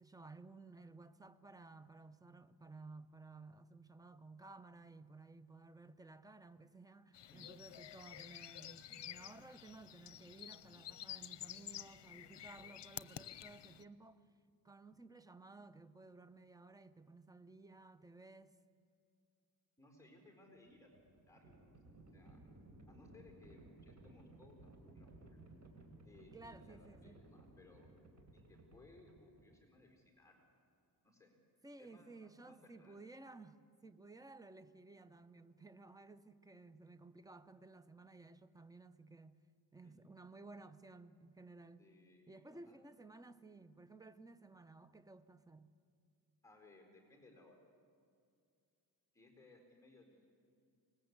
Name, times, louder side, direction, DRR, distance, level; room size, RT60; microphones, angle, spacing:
voice 1, 0.0-14.2 14.6-18.6 26.3-27.3 31.6-39.4 39.7-41.9 42.3-45.7, right 3 dB, 10° right, 0.8 m, -56 dB
sound 1, 7.1-13.8, left 12 dB, 75° left, 0.7 m, -51 dB
voice 2, 19.8-21.0 21.3-22.4 22.9-25.4 26.0-27.9 28.3-30.4 31.0-31.4 31.8-33.0 39.8-40.0 41.8-42.8 46.4-47.6 49.1-50.3, left 2 dB, 10° left, 4.3 m, -63 dB
Livestock farm animals working animals, 20.7-29.6, right 2 dB, 45° right, 4.3 m, -59 dB
25.0 x 20.5 x 8.1 m
wide cardioid pair, 110°, 42 cm